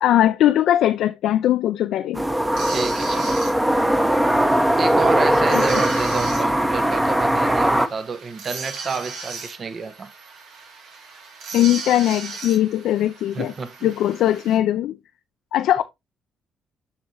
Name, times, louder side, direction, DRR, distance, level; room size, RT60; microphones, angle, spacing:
voice 1, 0.0-2.2 5.5-5.8 11.5-13.5 13.8-14.9 15.5-15.8, left 12 dB, 80° left, 0.4 m, -20 dB
sound 1, 2.1-7.9, right 1 dB, 10° right, 0.8 m, -20 dB
sound 2, 2.5-14.6, right 4 dB, 85° right, 2.5 m, -38 dB
voice 2, 2.6-3.4 4.8-10.1 13.3-13.9 15.8-15.9, right 5 dB, 45° right, 0.9 m, -29 dB
7.2 x 6.2 x 2.6 m
cardioid pair, 90°, 0 cm